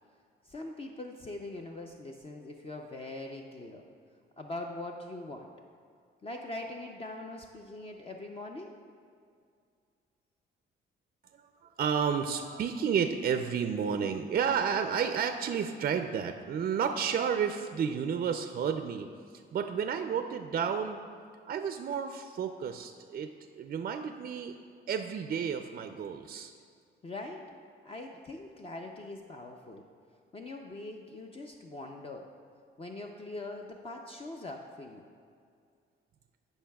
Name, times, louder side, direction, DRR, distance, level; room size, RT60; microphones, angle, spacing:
voice 1, 0.4-3.8 4.4-5.5 6.2-8.7 27.0-27.6 27.8-29.8 30.3-32.3 32.8-35.1, left 2 dB, 30° left, 2 dB, 0.5 m, -42 dB
voice 2, 11.4-19.1 19.5-21.0 21.5-23.3 23.5-24.6 24.9-26.5, right 7 dB, 45° right, 7 dB, 0.4 m, -31 dB
13.0 x 5.5 x 2.3 m, 2.3 s
cardioid pair, 90°, 20 cm